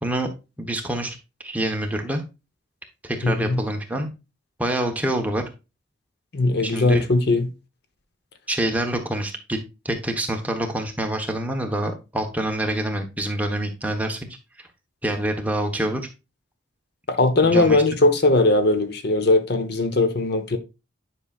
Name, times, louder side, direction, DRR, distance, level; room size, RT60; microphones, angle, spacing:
voice 1, 0.6-1.2 1.4-2.2 3.0-4.1 4.6-5.4 6.6-7.1 8.5-9.6 9.8-14.2 15.0-16.1 17.4-17.8, right 1 dB, 10° right, 1.0 m, -26 dB
voice 2, 3.2-3.6 6.3-7.5 17.1-20.6, left 2 dB, 55° left, 0.9 m, -19 dB
10.0 x 5.7 x 2.4 m
head